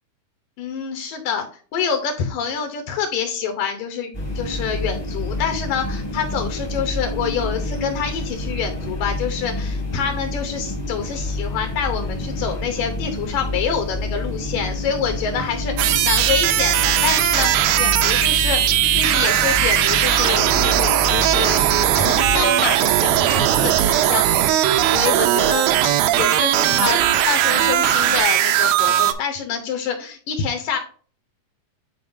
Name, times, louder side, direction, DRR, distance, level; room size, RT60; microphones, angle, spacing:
voice 1, 0.6-1.5 1.7-21.7 21.9-30.8, left 6 dB, 75° left, 5 dB, 2.2 m, -26 dB
sound 1, 4.1-22.5, left 2 dB, 30° left, 0.7 m, -28 dB
sound 2, 15.8-29.1, right 12 dB, 80° right, 2.2 m, -18 dB
9.5 x 4.2 x 2.6 m, 0.42 s
omnidirectional pair, 4.5 m